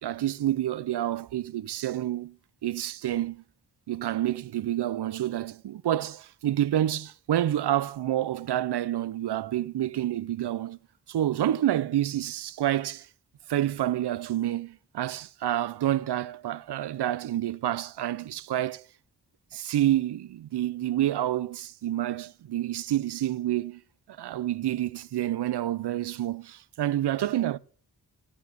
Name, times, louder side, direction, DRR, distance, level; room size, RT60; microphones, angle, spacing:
voice 1, 0.0-2.3 2.6-3.4 3.9-10.8 11.1-13.1 13.5-18.9 19.5-23.8 24.2-27.6, right 12 dB, 70° right, 0.6 m, -28 dB
16.5 x 8.8 x 5.9 m
cardioid pair, 45°, 41 cm